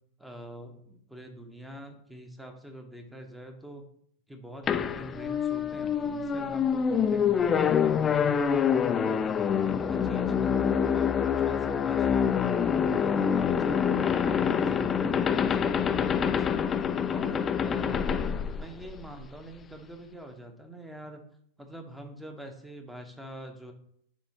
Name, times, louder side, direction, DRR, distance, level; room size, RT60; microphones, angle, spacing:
voice 1, 0.2-3.8 4.3-12.4 12.7-13.9 14.3-18.0 18.5-21.2 21.6-23.7, equal, 5° right, 5 dB, 0.9 m, -45 dB
sound 1, 4.7-19.2, left 7 dB, 20° left, 0.3 m, -26 dB
10.0 x 3.5 x 2.9 m, 0.67 s
figure-of-eight pair, 90°, 0 cm